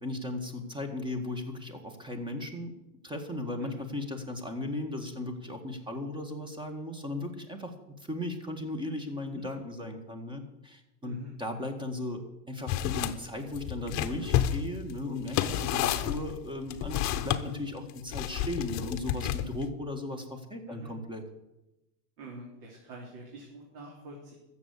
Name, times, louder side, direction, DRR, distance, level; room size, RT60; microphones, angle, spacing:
voice 1, 0.0-2.7 3.0-7.7 8.0-21.2, left 2 dB, 10° right, 6 dB, 1.9 m, -36 dB
voice 2, 11.0-11.3 20.7-20.9 22.2-24.3, right 2 dB, 60° right, -2 dB, 3.5 m, -46 dB
sound 1, 12.7-13.1 13.5-17.4 18.1-19.6, left 11 dB, 35° left, 1.0 m, -30 dB
13.5 x 7.3 x 8.3 m, 0.98 s
supercardioid pair, 125°, 47 cm